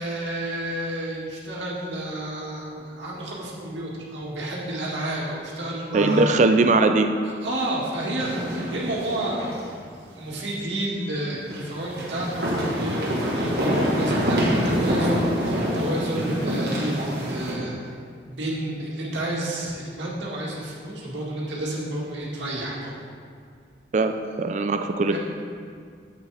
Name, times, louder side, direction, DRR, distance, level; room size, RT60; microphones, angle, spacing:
voice 1, 0.0-6.3 7.2-9.7 10.2-17.7 18.3-22.9 25.1-25.2, right 1 dB, 85° right, -4 dB, 1.9 m, -30 dB
voice 2, 5.9-7.1 23.9-24.1 24.4-25.2, right 3 dB, 40° right, 7 dB, 0.4 m, -20 dB
sound 1, 8.2-9.7 10.0-10.1 11.5-17.5, equal, 60° right, 1.6 m, -26 dB
9.2 x 7.9 x 3.4 m, 2.1 s
head